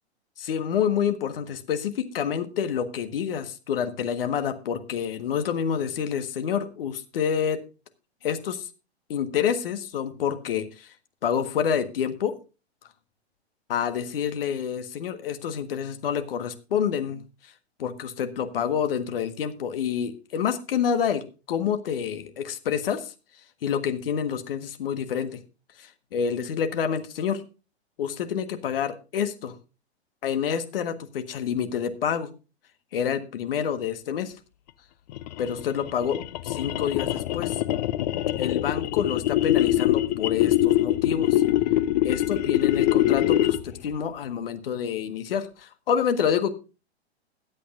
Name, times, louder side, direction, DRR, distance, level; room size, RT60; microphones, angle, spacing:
voice 1, 0.4-7.6 8.2-8.7 9.1-10.9 11.2-12.3 13.7-17.5 17.8-21.2 21.5-23.1 23.6-25.4 25.8-27.4 28.0-29.5 30.2-32.3 32.9-34.3 35.4-36.2 36.4-37.6 38.4-41.4 42.0-46.5, left 8 dB, 55° left, 9 dB, 1.5 m, -28 dB
sound 1, 35.1-43.8, left 14 dB, 40° left, 0.6 m, -24 dB
21.5 x 8.5 x 2.5 m, 0.32 s
figure-of-eight pair, 105°, 33 cm